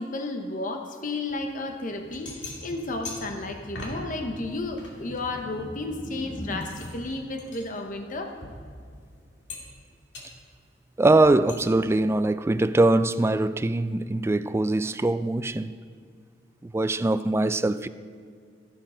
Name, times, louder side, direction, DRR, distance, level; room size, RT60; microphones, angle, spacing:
voice 1, 0.0-8.3, left 2 dB, 50° left, 0.9 m, -33 dB
sound 1, 1.3-1.4 1.9-4.1 4.4-5.9 6.3-9.1 9.5-9.9 10.1-10.3 11.5-11.6, left 2 dB, 90° left, 2.4 m, -41 dB
sound 2, 1.4-6.7, left 1 dB, 20° left, 0.6 m, -42 dB
voice 2, 11.0-15.7 16.6-17.9, right 2 dB, 15° right, 0.3 m, -22 dB
14.5 x 11.5 x 3.8 m
head